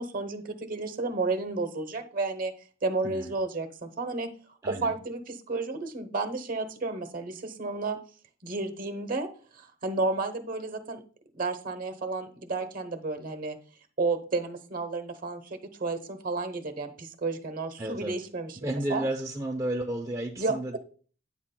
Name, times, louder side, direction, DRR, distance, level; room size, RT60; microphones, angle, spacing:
voice 1, 0.0-2.5 2.8-4.3 4.7-8.0 8.4-9.3 9.5-11.0 11.4-13.6 14.0-18.6 18.9-19.0 20.4-20.8, right 3 dB, 50° right, 8 dB, 1.0 m, -32 dB
voice 2, 17.8-18.1 18.6-20.8, right 1 dB, 15° right, 1 dB, 0.5 m, -32 dB
9.4 x 7.3 x 2.2 m, 0.41 s
head